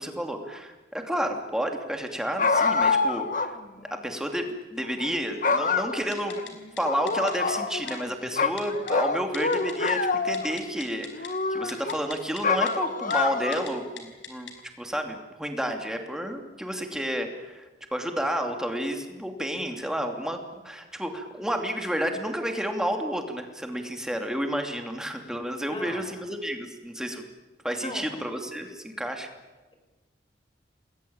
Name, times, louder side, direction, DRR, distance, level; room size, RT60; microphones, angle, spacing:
voice 1, 0.0-3.6 4.0-6.4 6.8-14.5 14.8-27.2 27.6-29.3, equal, 5° right, 4 dB, 2.8 m, -31 dB
sound 1, 2.4-3.5 3.9-4.0 4.8-5.1 5.4-6.4 6.8-8.1 8.4-10.6 11.1-12.0 12.4-13.7, left 4 dB, 45° left, 1.5 m, -26 dB
Typing, 6.1-6.5 6.8-6.9 7.1-7.3 7.9-8.0 8.6-8.9 9.3-9.9 10.2-11.3 11.7-12.4 12.7-12.8 13.1-13.2 13.5-13.7 14.0-14.5 14.9-15.0, left 8 dB, 85° left, 5.0 m, -40 dB
voice 2, 25.7-26.0 27.7-28.1, left 1 dB, 30° left, 5 dB, 5.0 m, -39 dB
28.5 x 21.0 x 8.8 m, 1.2 s
head